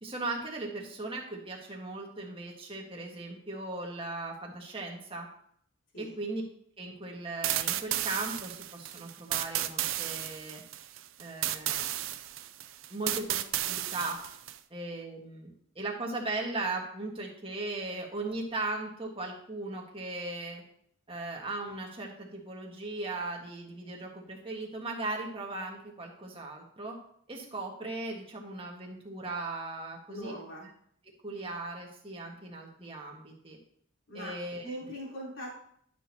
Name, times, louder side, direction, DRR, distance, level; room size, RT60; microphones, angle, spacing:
voice 1, 0.0-5.3 6.0-6.4 6.8-10.6 11.2-11.9 12.9-14.2 14.7-20.6 21.1-27.0 27.3-30.3 31.2-33.6 34.1-34.9, right 2 dB, 25° right, -1 dB, 1.5 m, -38 dB
sound 1, 7.4-14.6, right 13 dB, 80° right, 0.5 m, -33 dB
voice 2, 30.1-30.7 34.1-34.3 34.6-35.5, equal, 70° left, -5 dB, 3.6 m, -41 dB
11.5 x 6.2 x 2.9 m, 0.66 s
head